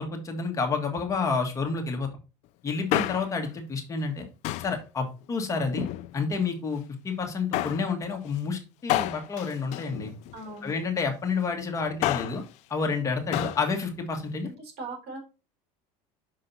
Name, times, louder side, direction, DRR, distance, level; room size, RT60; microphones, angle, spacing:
voice 1, 0.0-2.1 2.6-4.3 4.6-5.9 6.1-10.1 10.6-12.4 12.7-14.5, left 4 dB, 20° left, 3 dB, 1.5 m, -29 dB
Male speech man speaking, 2.7-3.5 4.4-4.8 5.6-6.4 7.5-7.9 8.9-10.6 11.8-12.5 13.3-13.7 13.9-14.0, left 15 dB, 55° left, 0.4 m, -30 dB
voice 2, 10.3-10.7 14.4-15.2, right 3 dB, 50° right, 1 dB, 3.9 m, -39 dB
5.9 x 4.9 x 4.0 m, 0.30 s
cardioid pair, 145°, 14 cm